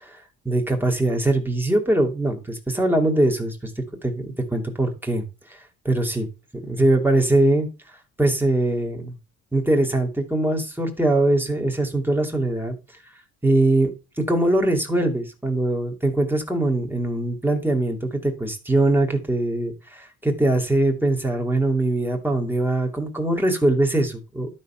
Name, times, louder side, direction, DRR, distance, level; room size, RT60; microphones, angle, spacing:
voice 1, 0.4-5.2 5.8-6.3 6.7-7.7 8.2-9.1 9.5-12.8 13.4-13.9 14.2-24.5, right 1 dB, 5° right, 2 dB, 2.6 m, -22 dB
12.0 x 4.3 x 5.7 m, 0.31 s
cardioid pair, 90°, 30 cm